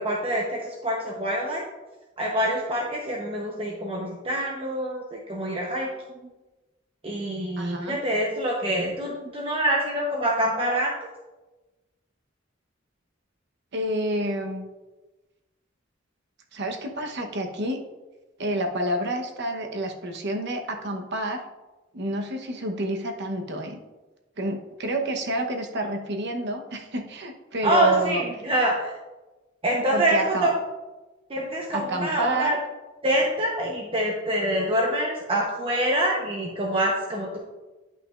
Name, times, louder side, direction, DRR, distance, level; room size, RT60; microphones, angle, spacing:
voice 1, 0.0-1.6 2.2-5.9 7.0-10.9 27.6-28.9 29.6-30.5 31.3-32.6 33.0-37.4, right 1 dB, 30° right, -2 dB, 0.9 m, -25 dB
voice 2, 7.6-8.0 13.7-14.7 16.5-17.8 18.4-21.4 21.9-23.8 24.4-28.2 29.9-30.5 31.7-32.6, right 1 dB, 60° right, 4 dB, 1.0 m, -29 dB
10.5 x 6.0 x 2.5 m, 1.1 s
head